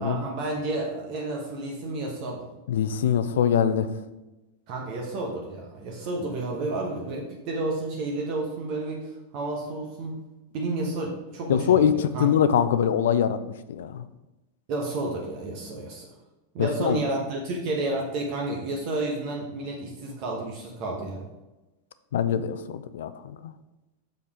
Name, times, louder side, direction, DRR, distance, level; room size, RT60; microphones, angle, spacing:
voice 1, 0.0-2.5 4.7-10.2 10.5-12.3 14.7-16.1 16.5-21.2, right 2 dB, 40° right, -1 dB, 1.2 m, -31 dB
voice 2, 2.7-3.9 11.5-13.4 13.7-14.1 16.6-17.0 22.1-23.5, left 8 dB, 60° left, 13 dB, 0.5 m, -23 dB
6.6 x 5.4 x 5.0 m, 1.0 s
figure-of-eight pair, 90°, 0 cm